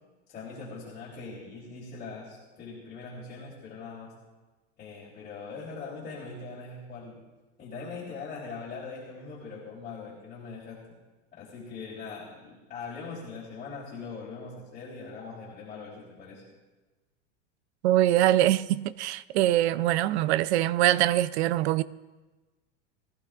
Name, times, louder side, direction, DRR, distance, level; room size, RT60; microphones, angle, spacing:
voice 1, 0.3-4.1 4.8-7.2 7.6-11.0 11.3-16.4, left 4 dB, 20° left, 3.2 m, -41 dB
voice 2, 17.8-21.8, right 13 dB, 60° right, 0.5 m, -23 dB
21.5 x 15.0 x 2.5 m
supercardioid pair, 165°, 37 cm